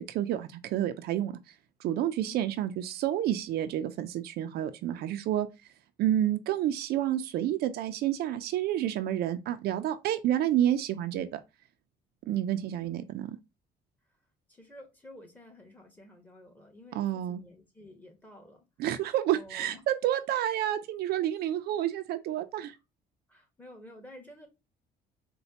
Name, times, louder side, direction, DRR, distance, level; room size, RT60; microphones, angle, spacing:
voice 1, 0.0-1.3 1.8-5.5 6.0-11.4 12.3-13.4 16.9-17.4 18.8-22.7, right 12 dB, 70° right, 0.5 m, -29 dB
voice 2, 12.5-12.9 14.5-18.6 19.3-19.8 23.3-24.5, left 1 dB, 10° left, 1.3 m, -51 dB
4.2 x 2.2 x 2.8 m
cardioid pair, 110°, 17 cm